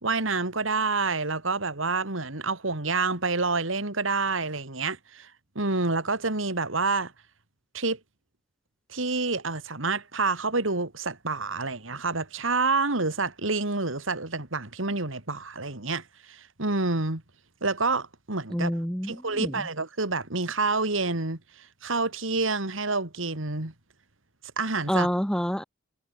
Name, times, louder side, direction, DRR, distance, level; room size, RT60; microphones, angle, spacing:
voice 1, 0.0-5.3 5.5-7.1 7.7-8.0 8.9-17.2 17.6-18.7 19.1-23.7 24.6-25.1, right 3 dB, 80° right, 3.0 m, -28 dB
voice 2, 18.5-19.5 24.9-25.6, equal, 5° left, 2.2 m, -27 dB
head